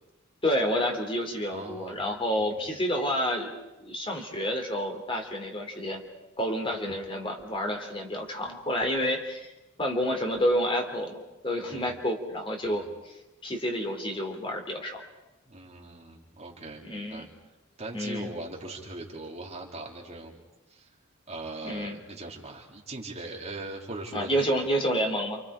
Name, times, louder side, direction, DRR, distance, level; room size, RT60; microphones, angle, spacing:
voice 1, 0.4-3.5 3.8-6.0 6.4-9.5 9.8-13.1 13.4-15.0 16.8-17.3 17.9-18.3 21.6-22.0 24.1-25.4, equal, 25° left, 2 dB, 3.5 m, -29 dB
voice 2, 1.5-2.0 11.7-11.9 12.7-12.9 15.5-17.3 17.8-20.4 20.7-20.9 21.3-24.6, right 2 dB, 30° right, -1 dB, 3.7 m, -40 dB
29.5 x 28.0 x 5.1 m, 1.0 s
head